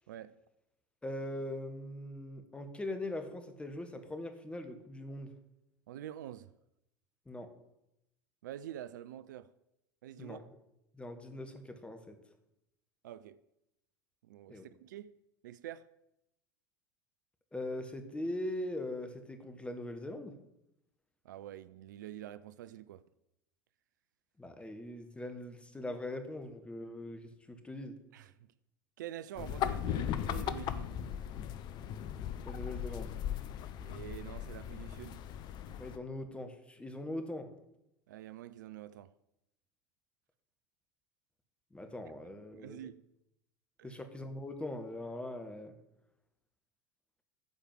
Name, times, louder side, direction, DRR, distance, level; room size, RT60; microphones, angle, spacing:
voice 1, 1.0-5.3 7.3-7.5 10.2-10.4 10.9-12.2 14.5-14.7 17.5-20.3 24.4-27.9 32.4-33.1 35.8-37.5 41.7-42.8 43.8-45.7, left 1 dB, 10° left, 1.4 m, -41 dB
voice 2, 5.9-6.5 8.4-9.5 10.0-10.5 13.0-13.4 14.2-15.2 15.4-15.9 21.2-23.0 28.1-28.3 29.0-31.0 33.8-35.2 38.1-39.1 42.5-43.0 43.8-44.0, right 11 dB, 70° right, 0.4 m, -46 dB
sound 1, 29.4-36.0, left 10 dB, 45° left, 0.6 m, -38 dB
9.3 x 4.8 x 7.6 m
figure-of-eight pair, 75°, 10 cm